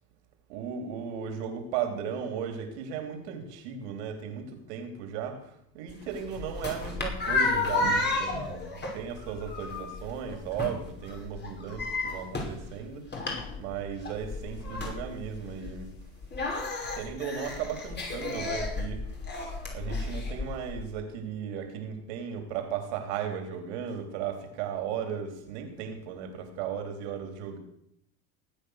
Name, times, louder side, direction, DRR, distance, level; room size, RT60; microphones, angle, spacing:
voice 1, 0.5-13.0 13.6-15.9 16.9-19.2 19.7-27.6, right 7 dB, 85° right, 5 dB, 3.6 m, -36 dB
sound 1, 5.9-20.8, left 3 dB, 30° left, 5.4 m, -33 dB
19.0 x 8.9 x 6.5 m, 0.75 s
supercardioid pair, 105°, 33 cm